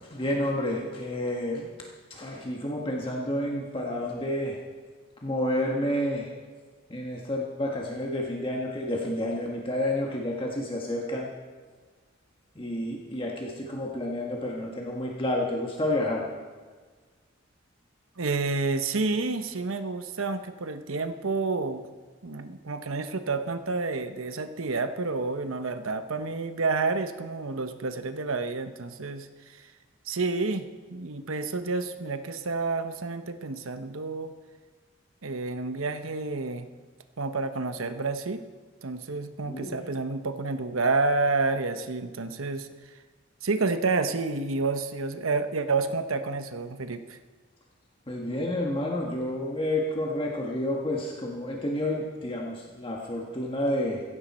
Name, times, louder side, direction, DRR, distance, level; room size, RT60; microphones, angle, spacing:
voice 1, 0.1-1.7 2.1-4.6 5.2-6.3 6.9-11.3 12.5-16.3 39.5-39.8 48.1-54.0, left 1 dB, 25° left, -1 dB, 1.5 m, -30 dB
voice 2, 18.2-21.8 22.2-29.7 30.0-34.3 35.2-36.7 37.2-38.4 38.8-42.7 43.4-47.2, right 3 dB, 90° right, 9 dB, 1.0 m, -29 dB
15.5 x 15.5 x 4.4 m, 1.4 s
head